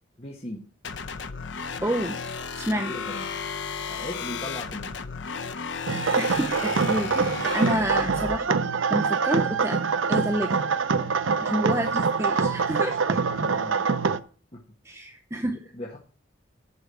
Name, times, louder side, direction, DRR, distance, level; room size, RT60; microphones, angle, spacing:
voice 1, 0.2-0.6 2.7-3.3 3.8-4.9 11.5-11.7 13.3-13.9 14.5-14.6 15.7-16.0, left 1 dB, 30° left, -1 dB, 1.2 m, -37 dB
sound 1, 0.8-8.4, left 5 dB, 65° left, 0.7 m, -34 dB
voice 2, 1.8-2.2 2.6-2.9 6.2-8.6 8.9-9.8 10.1-10.6 11.4-13.2 14.8-15.6, right 1 dB, 15° right, 4 dB, 0.6 m, -29 dB
sound 2, 5.9-14.2, right 5 dB, 80° right, 0.6 m, -25 dB
8.2 x 6.3 x 8.1 m, 0.42 s
head